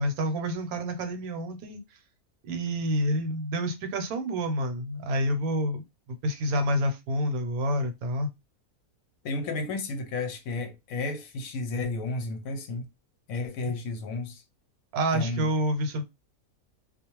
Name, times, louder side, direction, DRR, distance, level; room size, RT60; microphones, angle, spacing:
voice 1, 0.0-1.8 2.5-5.8 6.2-8.3 14.9-16.0, equal, 75° right, 1.1 m, -28 dB
voice 2, 9.2-12.8 13.3-14.4 15.1-15.5, left 3 dB, 70° left, 0.9 m, -32 dB
2.4 x 2.1 x 2.9 m
omnidirectional pair, 1.6 m